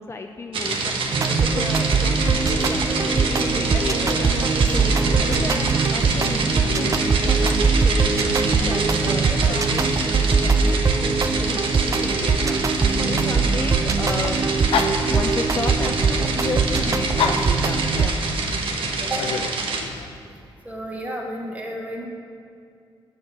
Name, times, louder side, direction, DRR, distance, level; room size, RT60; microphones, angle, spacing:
voice 1, 0.0-4.4 4.7-12.6 12.9-14.4 15.1-18.2, left 3 dB, 30° left, 4 dB, 0.4 m, -33 dB
sound 1, 0.5-19.8, right 3 dB, 70° right, 1.0 m, -27 dB
sound 2, 1.1-18.1, right 4 dB, 35° right, 0.4 m, -22 dB
Dog, 1.8-20.1, left 6 dB, 75° left, 0.5 m, -35 dB
voice 2, 20.6-22.1, right 1 dB, 15° right, -1 dB, 1.7 m, -31 dB
7.0 x 6.7 x 5.9 m, 2.4 s
cardioid pair, 85°, 9 cm